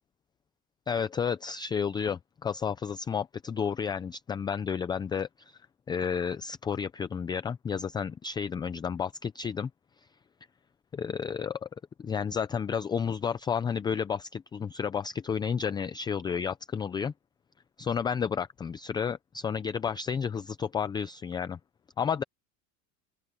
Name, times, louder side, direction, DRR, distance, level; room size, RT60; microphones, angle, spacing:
voice 1, 0.9-5.6 5.9-9.7 10.0-10.1 10.9-11.7 12.0-17.1 17.8-21.6 22.0-22.2, left 7 dB, 10° left, 0.3 m, -31 dB
open air
cardioid pair, 145°, 37 cm